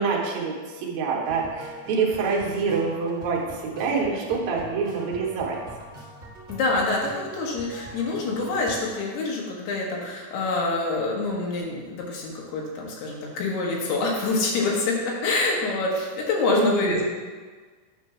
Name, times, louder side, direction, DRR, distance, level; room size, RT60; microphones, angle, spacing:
voice 1, 0.0-5.6 16.5-17.1, right 4 dB, 65° right, -2 dB, 1.9 m, -26 dB
sound 1, 1.2-9.0, right 2 dB, 90° right, 0.7 m, -43 dB
voice 2, 6.5-14.9 15.2-17.1, left 3 dB, 90° left, -2 dB, 3.3 m, -26 dB
9.3 x 3.2 x 5.9 m, 1.4 s
omnidirectional pair, 4.5 m